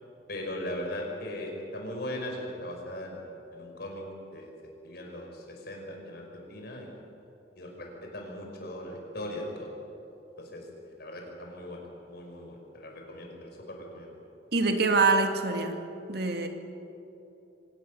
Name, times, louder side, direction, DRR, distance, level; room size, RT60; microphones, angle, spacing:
voice 1, 0.3-4.0 4.3-4.5 4.8-6.9 7.6-9.7 10.4-14.2, left 1 dB, 60° left, 1 dB, 5.6 m, -39 dB
voice 2, 14.5-15.8 16.1-16.5, right 3 dB, 65° right, 5 dB, 2.1 m, -24 dB
24.5 x 19.0 x 6.9 m, 3.0 s
head